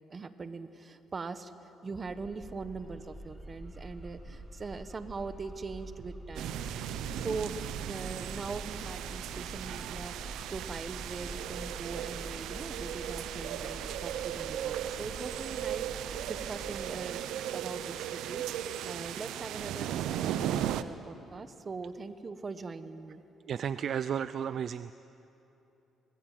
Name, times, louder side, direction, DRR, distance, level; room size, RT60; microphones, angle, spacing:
voice 1, 0.1-6.6 6.9-7.6 7.9-18.4 18.8-23.2, right 4 dB, 35° right, 10 dB, 1.4 m, -41 dB
sound 1, 2.0-16.9, right 1 dB, 20° right, 5.1 m, -46 dB
sound 2, 6.4-20.8, right 11 dB, 85° right, 0.9 m, -37 dB
voice 2, 23.5-24.9, right 8 dB, 60° right, 14 dB, 0.5 m, -33 dB
24.5 x 20.5 x 9.2 m, 3.0 s
cardioid pair, 85°, 0 cm